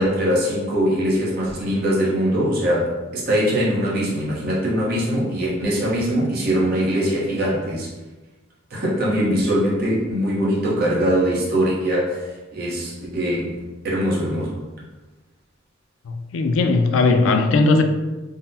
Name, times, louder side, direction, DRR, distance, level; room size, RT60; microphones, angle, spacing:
voice 1, 0.0-7.9 8.7-14.6, equal, 50° right, -5 dB, 0.8 m, -22 dB
voice 2, 16.1-17.8, left 3 dB, 75° left, 6 dB, 0.3 m, -18 dB
3.6 x 2.0 x 2.7 m, 1.2 s
head